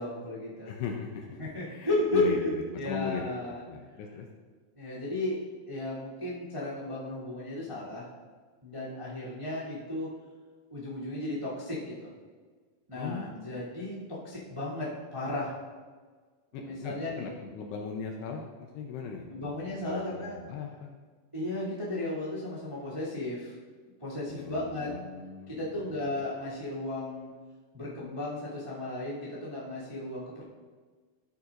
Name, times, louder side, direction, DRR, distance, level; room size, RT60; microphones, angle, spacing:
voice 1, 0.0-0.7 1.4-2.5 2.7-3.6 4.7-8.1 8.6-10.1 10.7-12.1 12.9-15.5 16.5-17.3 19.3-20.4 21.3-23.5 23.8-24.9 25.5-27.3 27.7-30.4, left 2 dB, 15° right, -9 dB, 1.2 m, -34 dB
voice 2, 0.7-1.3 1.7-2.4 2.8-3.2 3.7-4.3 13.0-13.6 16.5-19.5 19.9-21.0 24.3-25.6, left 6 dB, 80° left, 2 dB, 2.6 m, -38 dB
12.5 x 9.0 x 2.5 m, 1.5 s
omnidirectional pair, 5.3 m